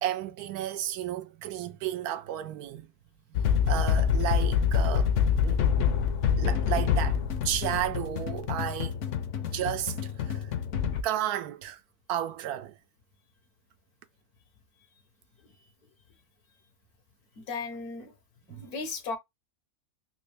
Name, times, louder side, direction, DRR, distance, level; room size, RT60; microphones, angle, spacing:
voice 1, 0.0-2.9 3.6-5.7 6.4-7.2 7.4-9.0 9.4-10.5 11.0-11.8 12.1-12.7 18.5-18.6, right 12 dB, 90° right, 1.1 m, -33 dB
sound 1, 3.3-11.0, left 7 dB, 70° left, 0.8 m, -26 dB
voice 2, 17.4-18.1 18.5-19.2, left 4 dB, 85° left, 1.4 m, -36 dB
3.7 x 2.6 x 3.2 m
omnidirectional pair, 1.6 m